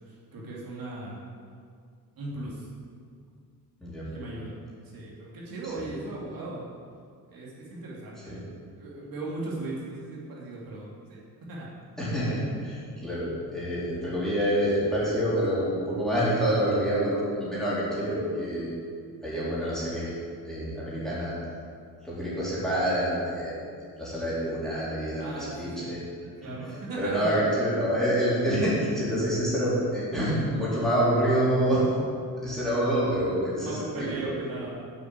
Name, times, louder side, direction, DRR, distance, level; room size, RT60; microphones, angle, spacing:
voice 1, 0.3-1.2 2.2-2.7 4.1-4.5 4.9-6.6 7.3-8.4 8.8-11.2 11.5-11.7 12.0-12.1 25.2-26.1 26.4-27.5 33.6-34.8, right 2 dB, 70° right, -5 dB, 3.0 m, -37 dB
voice 2, 12.0-18.7 19.2-20.1 20.4-21.3 22.0-23.5 24.0-26.0 26.4-31.8 32.4-34.3, equal, ahead, -10 dB, 3.8 m, -27 dB
9.2 x 8.2 x 8.4 m, 2.2 s
wide cardioid pair, 180°, 36 cm